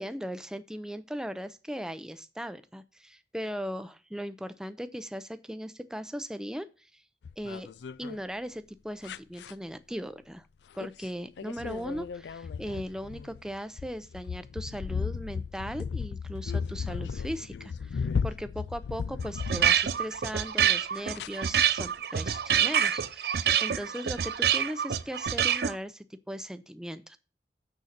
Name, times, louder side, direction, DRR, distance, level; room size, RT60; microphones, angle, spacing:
voice 1, 0.0-7.0 7.4-7.7 8.0-10.5 10.7-27.2, equal, 5° right, 11 dB, 0.5 m, -38 dB
sound 1, 7.2-8.2 9.0-9.5 10.8-11.1 11.4-20.2 21.2-21.3, left 5 dB, 80° left, 0.4 m, -35 dB
sound 2, 19.2-25.7, right 9 dB, 60° right, 0.5 m, -26 dB
6.5 x 5.6 x 6.5 m, 0.34 s
head